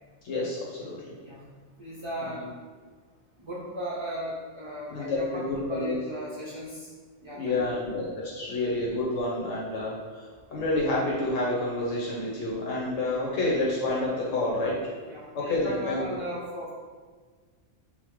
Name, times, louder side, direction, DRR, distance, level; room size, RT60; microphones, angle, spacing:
voice 1, 0.2-1.2 2.4-2.5 4.9-6.0 7.2-14.8 15.3-16.0, left 2 dB, 85° left, -5 dB, 1.2 m, -29 dB
voice 2, 1.8-2.4 3.4-6.9 7.2-7.8 15.0-16.7, equal, 40° right, -6 dB, 0.4 m, -37 dB
5.6 x 2.1 x 4.5 m, 1.5 s
omnidirectional pair, 1.2 m